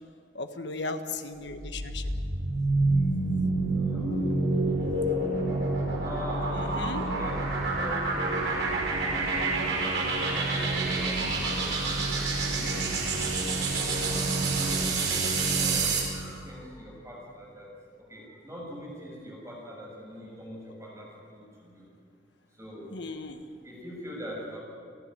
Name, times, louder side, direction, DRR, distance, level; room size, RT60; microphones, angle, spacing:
voice 1, 0.3-2.0 6.5-7.1 22.9-23.4, left 3 dB, 70° left, 7 dB, 1.5 m, -36 dB
sound 1, 1.5-16.2, right 3 dB, 85° right, 5.4 m, -28 dB
voice 2, 2.8-3.4 3.7-4.6 6.0-7.5 7.8-8.3 8.8-9.0 9.6-12.8 14.0-14.3 14.7-15.1 15.5-17.7 18.1-21.9 22.6-23.0 23.6-24.6, equal, 15° right, -3 dB, 7.0 m, -43 dB
29.5 x 10.5 x 9.8 m, 2.2 s
head